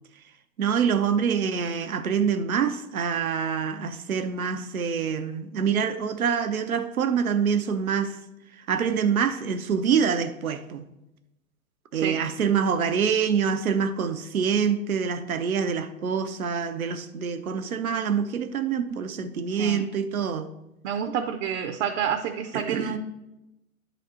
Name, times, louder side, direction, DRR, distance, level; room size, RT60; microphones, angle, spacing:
voice 1, 0.6-8.2 8.7-10.9 11.9-20.5 22.5-23.0, right 7 dB, 90° right, 0.7 m, -26 dB
voice 2, 20.8-23.0, right 8 dB, 55° right, 0.7 m, -28 dB
10.0 x 4.1 x 4.3 m
hypercardioid pair, 110°, 41 cm